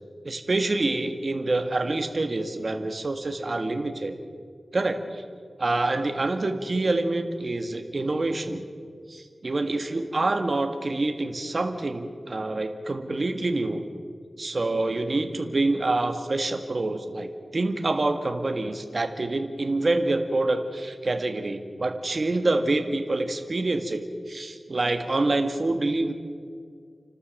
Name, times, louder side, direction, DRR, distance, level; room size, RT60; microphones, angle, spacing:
voice 1, 0.2-4.2 4.7-5.2 5.6-8.6 9.1-13.8 14.4-26.1, right 2 dB, 50° right, 6 dB, 1.8 m, -26 dB
29.5 x 12.5 x 7.5 m, 2.1 s
wide cardioid pair, 80°, 0 cm